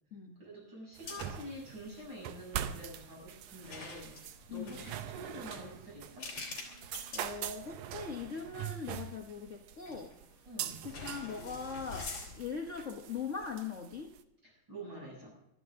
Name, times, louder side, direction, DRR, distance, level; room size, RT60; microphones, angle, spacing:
voice 1, 0.4-6.3 10.4-10.9 14.4-15.3, equal, 35° right, -3 dB, 8.2 m, -47 dB
sound 1, 1.0-1.6 1.8-2.1 3.6-8.0 8.5-8.6 9.8-10.3 10.9-12.6, left 3 dB, 40° left, 4.3 m, -46 dB
sound 2, 1.0-14.2, right 10 dB, 80° right, 2.2 m, -43 dB
voice 2, 7.1-10.1 10.8-14.1, left 5 dB, 55° left, 1 dB, 0.8 m, -41 dB
22.5 x 13.0 x 3.7 m, 0.82 s
omnidirectional pair, 3.4 m